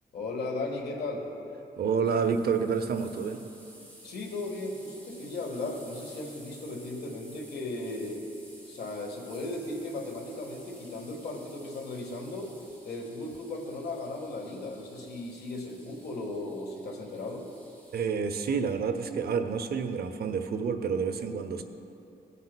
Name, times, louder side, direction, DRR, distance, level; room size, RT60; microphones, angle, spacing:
voice 1, 0.1-1.3 4.0-8.3 8.6-12.5 12.8-17.5, left 2 dB, 70° left, 1 dB, 1.5 m, -36 dB
voice 2, 1.8-3.4 17.9-21.6, right 6 dB, 65° right, 7 dB, 0.6 m, -29 dB
sound 1, 2.0-18.0, equal, 10° left, 2.5 m, -54 dB
18.0 x 8.3 x 2.2 m, 2.8 s
wide cardioid pair, 130°, 17 cm